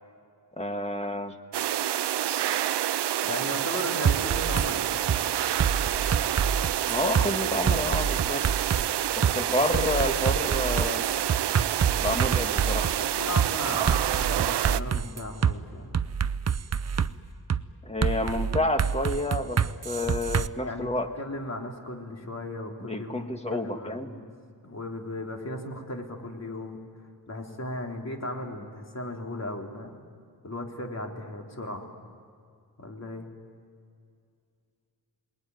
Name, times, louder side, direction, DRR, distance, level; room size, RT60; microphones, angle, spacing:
voice 1, 0.6-1.4 6.9-8.5 9.2-11.0 12.0-12.9 17.8-19.6 19.8-21.1 22.8-24.1, left 1 dB, 15° left, 5 dB, 1.8 m, -29 dB
sound 1, 1.5-14.8, right 12 dB, 85° right, 0.6 m, -28 dB
voice 2, 3.2-5.3 13.0-15.9 20.6-20.9 21.2-24.3 24.6-26.8 27.3-30.0 30.4-31.9 32.8-33.3, left 2 dB, 40° left, 1 dB, 3.4 m, -36 dB
sound 2, 4.0-4.7 5.1-5.2 5.6-7.3 7.7-8.8 9.2-9.3 9.7-13.0 13.4-13.5 13.9-15.5 15.9-17.1 17.5-17.6 18.0-20.5, right 7 dB, 40° right, 0.6 m, -26 dB
29.0 x 20.5 x 9.5 m, 2.3 s
wide cardioid pair, 110°, 40 cm